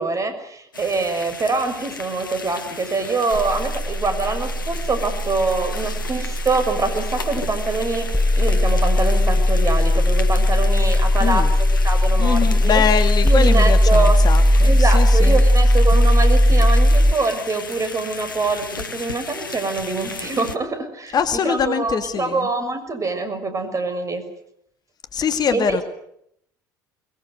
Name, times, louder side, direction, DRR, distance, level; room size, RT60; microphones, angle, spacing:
voice 1, 0.0-8.1 8.4-11.5 11.8-12.8 13.2-14.2 14.6-24.2 25.5-25.8, right 3 dB, 30° right, 8 dB, 6.4 m, -24 dB
sound 1, 0.7-20.6, left 4 dB, 85° left, 1.5 m, -35 dB
sound 2, 3.3-17.1, left 1 dB, ahead, 1.3 m, -17 dB
voice 2, 11.2-11.5 12.2-15.4 21.1-22.5 25.1-25.8, left 7 dB, 40° left, 8 dB, 2.2 m, -23 dB
24.0 x 22.0 x 8.2 m, 0.72 s
figure-of-eight pair, 60°, 11 cm